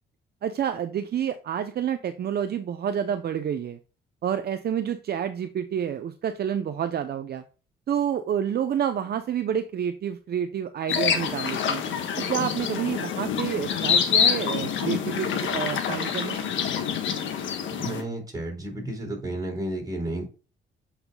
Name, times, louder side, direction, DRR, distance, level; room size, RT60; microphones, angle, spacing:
voice 1, 0.4-3.8 4.2-7.4 7.9-11.8 12.2-16.5, right 9 dB, 55° right, 9 dB, 0.7 m, -29 dB
sound 1, 10.9-18.0, left 7 dB, 80° left, 1.4 m, -26 dB
voice 2, 17.8-20.3, right 1 dB, 20° right, 1 dB, 3.9 m, -32 dB
7.8 x 5.7 x 2.3 m, 0.34 s
cardioid pair, 90°, 20 cm